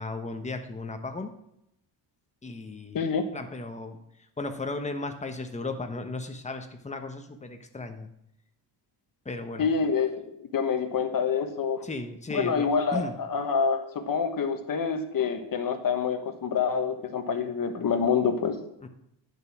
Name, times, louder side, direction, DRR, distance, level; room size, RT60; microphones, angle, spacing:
voice 1, 0.0-1.3 2.4-3.0 3.3-4.0 4.4-8.1 9.2-9.7 11.8-13.1 18.8-18.9, left 2 dB, 15° left, 6 dB, 1.1 m, -35 dB
voice 2, 2.9-3.2 9.6-11.8 12.3-18.6, left 6 dB, 50° left, 7 dB, 1.4 m, -27 dB
10.5 x 6.7 x 6.0 m, 0.79 s
cardioid pair, 135°, 44 cm